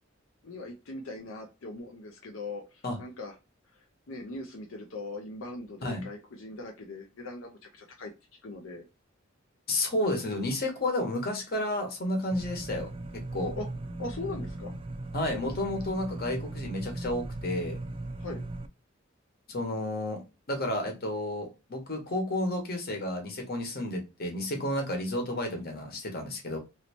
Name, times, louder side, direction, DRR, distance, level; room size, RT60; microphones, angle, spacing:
voice 1, 0.4-3.4 3.7-8.1 8.4-8.8 13.6-13.7 14.0-14.7 18.2-18.4, left 2 dB, 80° left, 2 dB, 0.6 m, -40 dB
voice 2, 9.7-12.9 13.3-13.5 15.1-17.8 19.5-20.2 20.5-26.6, left 1 dB, 50° left, 3 dB, 1.1 m, -31 dB
sound 1, 12.3-18.7, right 2 dB, 25° right, 0.3 m, -38 dB
3.1 x 2.8 x 2.8 m, 0.27 s
head